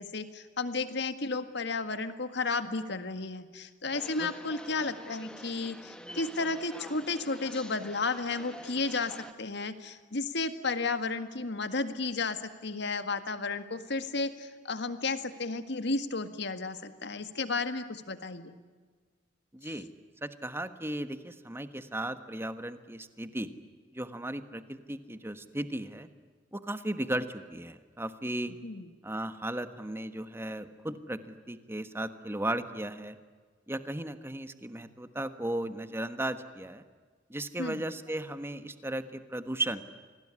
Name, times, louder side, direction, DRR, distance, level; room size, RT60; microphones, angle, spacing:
voice 1, 0.0-18.5 28.5-28.9 37.6-37.8, left 3 dB, 65° left, 10 dB, 1.8 m, -33 dB
sound 1, 3.9-9.3, equal, 5° left, 1.5 m, -47 dB
voice 2, 19.5-19.9 20.2-23.5 23.9-26.1 26.5-28.5 29.0-33.2 33.7-36.8 37.3-39.8, right 1 dB, 15° right, 10 dB, 1.4 m, -36 dB
27.5 x 20.5 x 9.7 m, 1.5 s
head